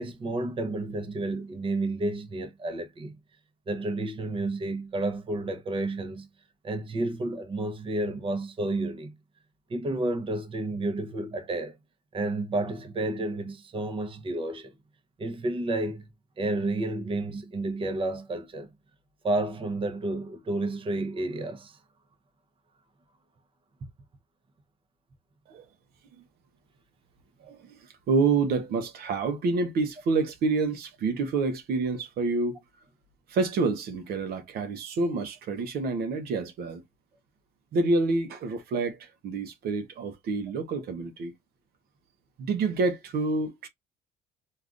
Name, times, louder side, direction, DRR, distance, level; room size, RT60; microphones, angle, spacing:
voice 1, 0.0-3.1 3.7-6.3 6.6-9.1 9.7-11.8 12.1-14.7 15.2-16.1 16.4-18.7 19.2-21.8, right 2 dB, 30° right, 0.7 m, -31 dB
voice 2, 27.4-32.6 33.3-36.8 37.7-41.3 42.4-43.7, right 3 dB, 65° right, 0.7 m, -28 dB
3.5 x 2.4 x 2.4 m
cardioid pair, 110°, 17 cm